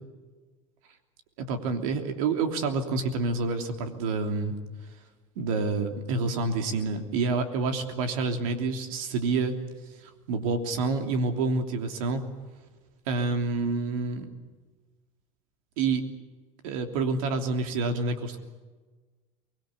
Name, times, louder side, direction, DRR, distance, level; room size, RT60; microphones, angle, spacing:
voice 1, 1.4-4.6 5.4-9.5 10.3-12.2 13.1-14.3 15.8-16.0 16.6-18.4, right 3 dB, 75° right, 6 dB, 3.2 m, -28 dB
24.0 x 20.5 x 8.4 m, 1.3 s
hypercardioid pair, 95°, 18 cm